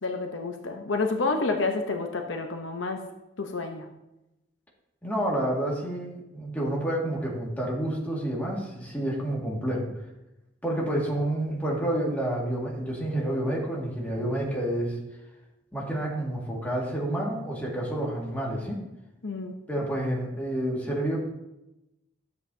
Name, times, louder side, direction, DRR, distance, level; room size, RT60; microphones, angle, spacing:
voice 1, 0.0-3.0 3.4-3.9 19.2-19.5, left 3 dB, 70° left, 4 dB, 0.8 m, -29 dB
voice 2, 5.0-9.9 10.6-15.0 15.7-18.8 19.7-21.2, right 1 dB, 10° left, -3 dB, 1.9 m, -29 dB
12.5 x 7.9 x 2.7 m, 0.94 s
head